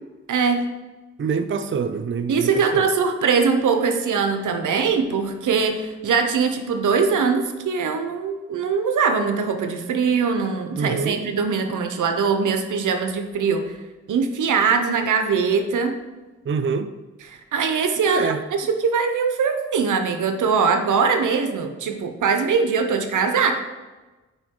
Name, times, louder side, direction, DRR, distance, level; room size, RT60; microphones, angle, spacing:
voice 1, 0.3-0.7 2.3-13.7 14.1-16.0 17.2-23.6, right 5 dB, 85° right, 6 dB, 0.8 m, -22 dB
voice 2, 1.2-2.9 10.8-11.2 16.5-16.9 18.1-18.4, right 5 dB, 40° right, 9 dB, 0.5 m, -25 dB
8.1 x 5.0 x 3.7 m, 1.2 s
cardioid pair, 65°, 30 cm